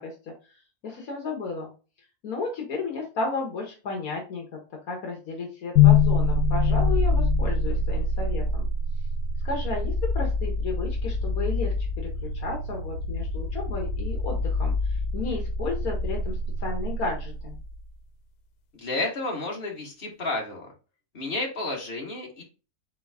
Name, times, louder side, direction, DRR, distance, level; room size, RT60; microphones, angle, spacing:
voice 1, 0.0-1.7 2.2-4.4 4.8-8.7 9.4-17.5, left 3 dB, 70° left, 1 dB, 1.4 m, -33 dB
sound 1, 5.8-17.8, left 4 dB, 85° left, 1.2 m, -25 dB
voice 2, 18.7-20.7 21.1-22.4, left 2 dB, 35° left, -1 dB, 1.7 m, -31 dB
4.0 x 3.8 x 3.5 m, 0.34 s
omnidirectional pair, 1.6 m